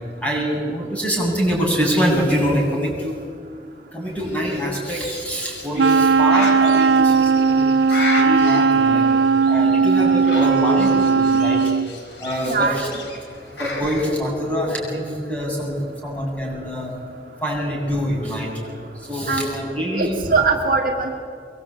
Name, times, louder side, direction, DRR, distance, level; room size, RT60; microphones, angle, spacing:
voice 1, 0.2-3.1 3.9-9.1 9.5-11.6 12.2-12.9 13.6-16.9 17.4-18.6 18.9-20.1, equal, 10° left, -3 dB, 7.9 m, -24 dB
Bird, 4.2-14.1, left 2 dB, 80° left, 4.1 m, -34 dB
Wind instrument woodwind instrument, 5.8-11.9, right 4 dB, 85° right, 0.6 m, -17 dB
voice 2, 12.4-13.0 19.3-19.5 20.0-21.2, right 4 dB, 50° right, 1 dB, 2.2 m, -21 dB
23.5 x 23.5 x 8.8 m, 2.1 s
head